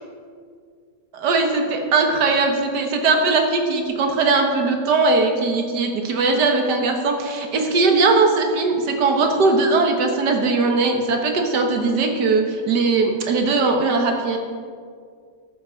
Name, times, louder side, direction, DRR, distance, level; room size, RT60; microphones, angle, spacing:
voice 1, 1.1-14.4, right 3 dB, 60° right, 3 dB, 1.8 m, -19 dB
13.0 x 7.4 x 5.2 m, 2.1 s
omnidirectional pair, 2.1 m